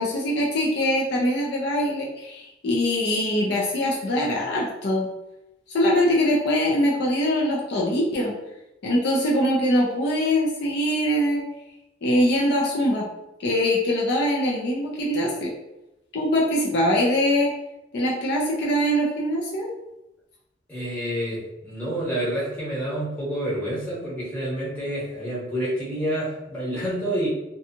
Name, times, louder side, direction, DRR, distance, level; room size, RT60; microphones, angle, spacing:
voice 1, 0.0-5.1 5.7-8.3 8.8-11.4 12.0-13.1 13.4-15.5 16.1-17.5 17.9-19.7, equal, 60° left, -3 dB, 0.5 m, -23 dB
voice 2, 20.7-27.3, right 1 dB, 10° left, -8 dB, 1.1 m, -28 dB
2.6 x 2.3 x 2.8 m, 0.91 s
head